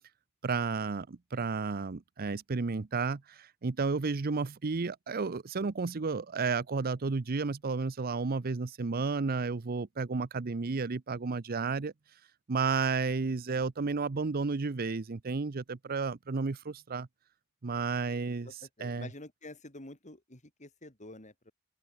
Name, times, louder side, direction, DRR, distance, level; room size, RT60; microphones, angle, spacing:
voice 1, 0.4-11.9 12.5-17.1 17.6-18.5 18.8-19.1, right 4 dB, 45° right, 0.6 m, -32 dB
voice 2, 18.4-21.5, left 2 dB, 35° left, 5.1 m, -48 dB
open air
head